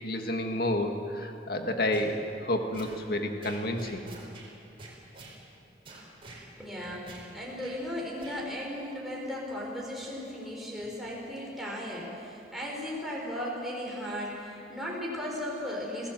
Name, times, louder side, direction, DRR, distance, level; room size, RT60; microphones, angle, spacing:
voice 1, 0.0-2.2 2.4-4.0, left 1 dB, 55° left, 4 dB, 2.0 m, -30 dB
sound 1, 1.9-2.1 2.7-3.0 3.4-4.5 4.8-5.4 5.8-6.4 7.1-7.3 7.6-7.8 8.2-8.4, right 2 dB, 30° right, 4.5 m, -47 dB
voice 2, 6.6-16.1, left 1 dB, ahead, -4 dB, 5.1 m, -36 dB
26.0 x 17.0 x 7.7 m, 2.8 s
head